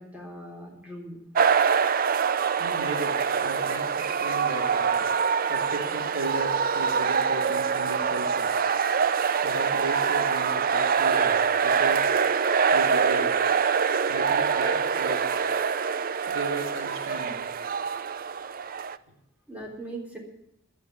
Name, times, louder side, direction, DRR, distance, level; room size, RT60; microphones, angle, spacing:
voice 1, 0.0-1.2 19.5-20.2, right 1 dB, 5° right, -2 dB, 3.6 m, -40 dB
sound 1, 1.3-19.0, right 6 dB, 45° right, 0.5 m, -25 dB
voice 2, 2.6-3.1 3.4-5.1 5.5-8.5 9.4-11.4 11.6-12.1 12.7-13.3 14.1-15.2 16.3-17.4, right 2 dB, 80° right, 1 dB, 2.8 m, -35 dB
12.0 x 9.4 x 9.5 m, 0.78 s
head